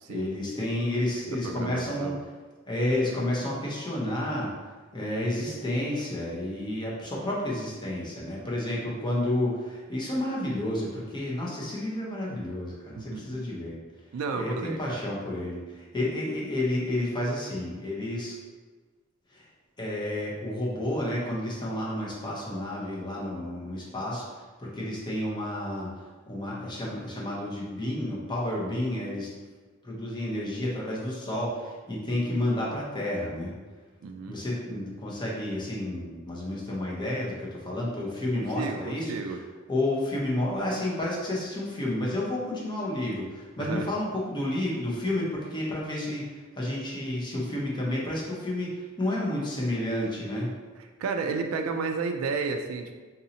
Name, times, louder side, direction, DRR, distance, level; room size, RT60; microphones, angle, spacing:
voice 1, 0.1-2.2 2.7-13.8 14.3-18.4 19.3-19.5 19.8-29.3 29.8-33.5 34.3-39.3 39.7-50.5, left 1 dB, 20° left, -4 dB, 0.8 m, -31 dB
voice 2, 1.3-2.2 13.0-13.2 14.1-15.1 34.0-34.4 38.3-39.4 43.6-43.9 51.0-52.9, right 4 dB, 85° right, 4 dB, 0.3 m, -32 dB
3.9 x 2.7 x 2.8 m, 1.4 s
head